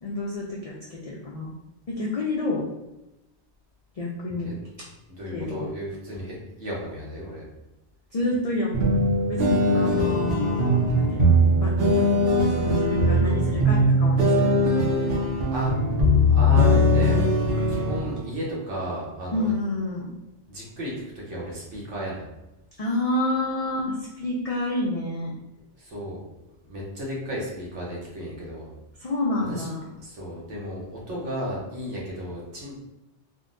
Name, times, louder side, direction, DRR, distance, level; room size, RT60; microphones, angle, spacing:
voice 1, 0.0-1.5 1.9-2.7 4.0-4.5 5.3-5.7 8.1-9.0 9.3-11.4 11.6-12.1 12.5-14.5 19.3-20.1 22.8-25.3 29.0-29.9, left 2 dB, 70° left, -4 dB, 0.3 m, -29 dB
voice 2, 5.2-7.4 9.6-10.0 15.5-15.7 16.3-17.3 17.7-19.5 20.5-22.3 25.8-26.2 26.6-28.7 29.4-29.7 30.0-32.8, equal, 80° right, -4 dB, 1.2 m, -34 dB
sound 1, 8.7-18.2, equal, 60° right, 0.8 m, -20 dB
3.6 x 2.1 x 2.5 m, 0.94 s
omnidirectional pair, 1.2 m